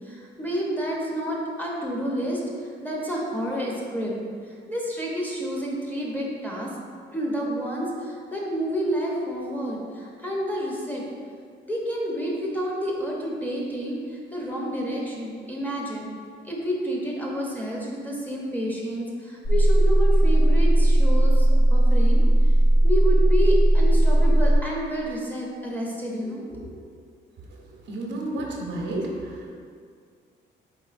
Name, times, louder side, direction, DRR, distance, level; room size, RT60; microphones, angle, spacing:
voice 1, 0.0-4.1 4.5-6.7 7.1-11.0 11.7-16.1 16.4-22.3 22.8-26.7, equal, 10° left, -3 dB, 0.7 m, -29 dB
sound 1, 19.4-24.6, right 1 dB, 50° left, 0.4 m, -17 dB
voice 2, 27.5-29.5, right 1 dB, 65° right, -1 dB, 0.6 m, -32 dB
4.1 x 3.1 x 2.4 m, 2.1 s
cardioid pair, 90°, 20 cm